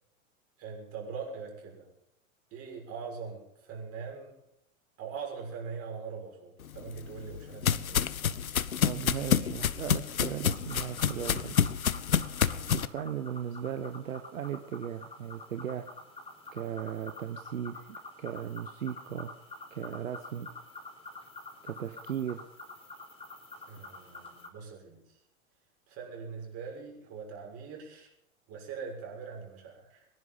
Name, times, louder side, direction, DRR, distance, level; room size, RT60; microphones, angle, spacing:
voice 1, 0.6-1.9 2.5-4.3 5.0-8.1 12.5-12.7 23.7-25.2 25.9-28.1 28.5-30.1, right 5 dB, 35° right, -1 dB, 6.7 m, -42 dB
sound 1, 6.7-12.9, left 8 dB, 80° left, 0.8 m, -28 dB
voice 2, 8.8-11.6 12.7-15.9 16.5-19.3 19.7-20.5 21.6-22.4, right 9 dB, 70° right, 9 dB, 1.1 m, -37 dB
sound 2, 10.5-24.5, left 2 dB, 15° left, 3.9 m, -47 dB
22.5 x 11.0 x 5.6 m, 0.79 s
figure-of-eight pair, 95°, 41 cm